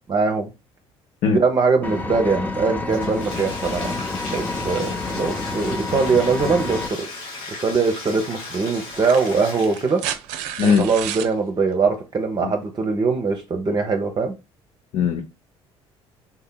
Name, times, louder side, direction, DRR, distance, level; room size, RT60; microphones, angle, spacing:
voice 1, 0.1-0.5 1.3-3.9 4.3-7.1 7.6-10.0 10.6-14.3, right 4 dB, 35° right, 0.6 m, -22 dB
voice 2, 1.2-1.4 10.6-10.9 12.4-12.5 14.9-15.2, left 6 dB, 60° left, 0.6 m, -19 dB
Engine, 1.8-6.9, left 3 dB, 15° left, 0.7 m, -28 dB
Bathtub (filling or washing), 2.9-10.1, left 3 dB, 85° left, 1.0 m, -36 dB
sound 1, 8.9-11.3 12.8-12.9, right 10 dB, 80° right, 0.4 m, -31 dB
3.7 x 2.7 x 2.2 m
supercardioid pair, 70°, 13 cm